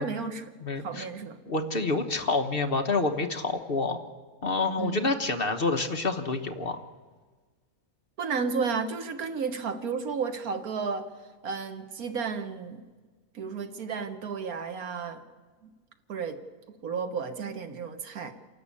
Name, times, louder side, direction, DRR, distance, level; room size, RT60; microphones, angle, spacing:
voice 1, 0.0-0.5 0.8-1.4 4.8-5.1 8.2-11.1 11.4-12.9 13.3-15.2 15.6-15.7 16.1-16.4 16.7-18.3, right 5 dB, 75° right, 8 dB, 1.7 m, -32 dB
voice 2, 0.6-1.1 1.5-4.0 4.4-6.8, left 3 dB, 40° left, 6 dB, 1.2 m, -28 dB
28.0 x 12.0 x 8.5 m, 1.4 s
omnidirectional pair, 1.6 m